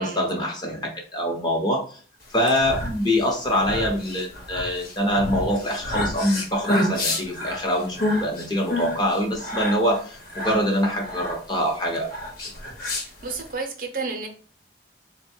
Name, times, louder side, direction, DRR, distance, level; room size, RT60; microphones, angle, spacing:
voice 1, 0.0-2.0 2.3-12.1, equal, 25° left, 0 dB, 0.9 m, -24 dB
sound 1, 2.3-13.5, left 1 dB, 55° left, 1.1 m, -29 dB
voice 2, 13.0-14.3, right 4 dB, 50° right, 3 dB, 0.8 m, -31 dB
3.9 x 2.2 x 4.4 m, 0.43 s
head